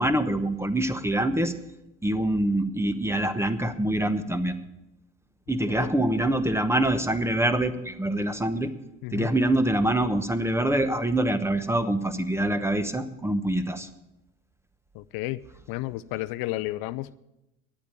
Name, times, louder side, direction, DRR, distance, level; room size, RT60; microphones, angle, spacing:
voice 1, 0.0-1.5 2.0-4.6 5.5-8.7 9.1-13.9, right 1 dB, 5° right, 10 dB, 1.0 m, -25 dB
voice 2, 9.0-9.3 14.9-15.4 15.7-17.2, left 17 dB, 70° left, 16 dB, 0.5 m, -32 dB
10.5 x 8.4 x 8.9 m, 0.91 s
supercardioid pair, 90°, 37 cm